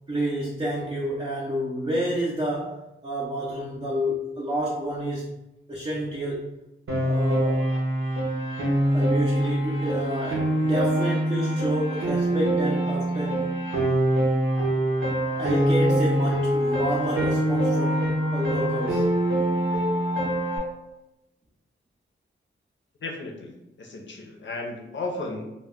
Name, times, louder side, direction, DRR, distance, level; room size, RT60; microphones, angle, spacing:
voice 1, 0.1-5.3 5.7-6.5 7.0-7.7 8.9-13.5 15.4-19.1, equal, 20° right, -5 dB, 0.4 m, -29 dB
Piano, 6.9-20.6, right 1 dB, 75° right, 0.7 m, -24 dB
voice 2, 23.0-23.5 23.8-25.4, left 2 dB, 65° left, 0 dB, 0.5 m, -34 dB
2.1 x 2.1 x 3.5 m, 0.94 s
wide cardioid pair, 135°, 21 cm